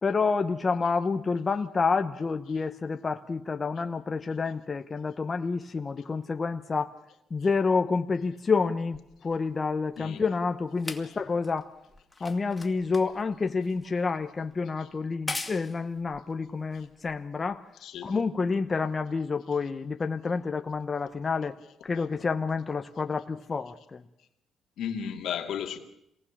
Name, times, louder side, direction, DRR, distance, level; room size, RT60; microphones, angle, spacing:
voice 1, 0.0-6.9 7.3-11.7 12.2-17.6 18.0-21.5 21.8-24.0, left 4 dB, 35° left, 1.1 m, -29 dB
sound 1, 8.9-17.6 18.4-18.5, left 2 dB, 15° left, 2.5 m, -43 dB
voice 2, 17.8-18.2 24.8-25.8, left 8 dB, 75° left, 2.5 m, -35 dB
26.5 x 19.0 x 7.4 m
cardioid pair, 90°, 0 cm